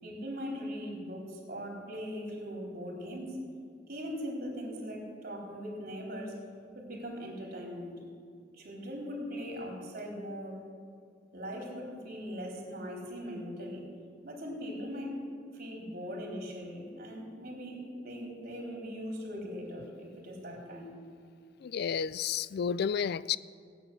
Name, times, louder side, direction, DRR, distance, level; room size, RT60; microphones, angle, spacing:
voice 1, 0.0-3.4 3.9-6.4 6.7-7.9 8.5-10.6 11.3-13.8 14.2-15.1 15.5-20.9, equal, 55° right, -1 dB, 4.1 m, -40 dB
voice 2, 21.6-23.4, left 7 dB, 60° left, 19 dB, 0.4 m, -31 dB
17.0 x 9.3 x 7.7 m, 2.3 s
head